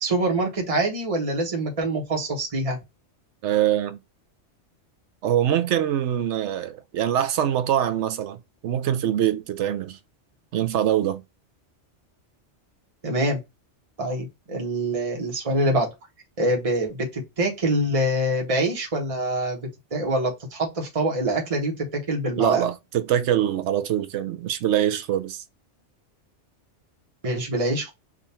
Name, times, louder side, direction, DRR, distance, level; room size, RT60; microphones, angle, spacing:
voice 1, 0.0-2.8 13.0-13.4 14.0-15.9 16.4-22.6 27.2-27.9, right 1 dB, 30° right, 1.1 m, -25 dB
voice 2, 3.4-4.0 5.2-10.0 10.5-11.2 22.4-25.4, right 11 dB, 75° right, 0.9 m, -24 dB
3.7 x 2.5 x 4.2 m
omnidirectional pair, 1.2 m